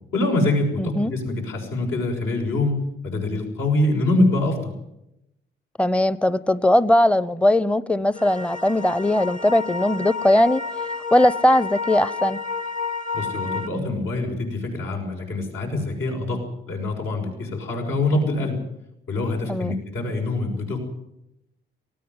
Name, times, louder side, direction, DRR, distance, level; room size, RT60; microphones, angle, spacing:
voice 1, 0.1-2.8 3.0-4.7 13.1-16.4 16.7-18.6 19.1-20.8, left 2 dB, 80° left, 1 dB, 6.3 m, -24 dB
voice 2, 0.8-1.1 5.8-10.6 11.1-12.4 19.5-19.8, left 1 dB, 5° left, 17 dB, 0.7 m, -19 dB
sound 1, 8.1-13.7, left 4 dB, 40° left, 1.3 m, -30 dB
19.0 x 17.5 x 9.6 m, 0.86 s
cardioid pair, 90°, 20 cm